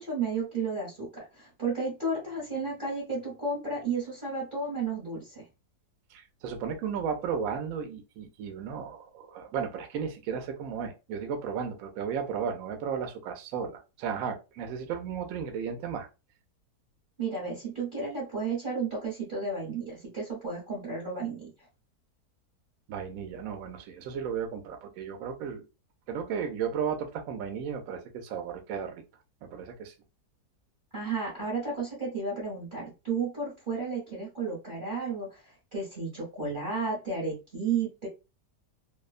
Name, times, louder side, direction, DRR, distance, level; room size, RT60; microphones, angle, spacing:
voice 1, 0.0-5.4 17.2-21.5 30.9-38.1, right 4 dB, 35° right, 1.0 m, -33 dB
voice 2, 6.1-16.1 22.9-25.6 26.1-29.0 29.4-29.9, right 7 dB, 65° right, 0.9 m, -34 dB
2.7 x 2.2 x 2.4 m
omnidirectional pair, 1.8 m